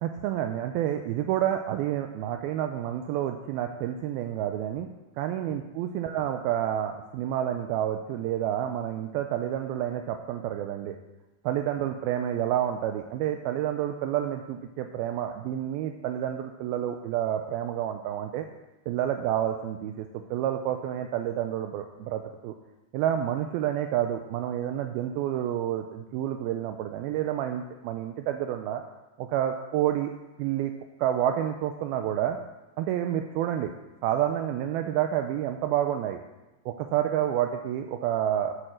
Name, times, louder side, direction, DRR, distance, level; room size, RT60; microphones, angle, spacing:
voice 1, 0.0-4.9 5.2-11.0 11.4-18.5 18.9-22.5 22.9-28.8 29.2-30.1 30.4-30.7 31.0-32.4 32.8-33.7 34.0-36.2 36.7-38.6, right 11 dB, 85° right, 6 dB, 2.2 m, -29 dB
11.0 x 7.7 x 6.4 m, 1.0 s
omnidirectional pair, 4.8 m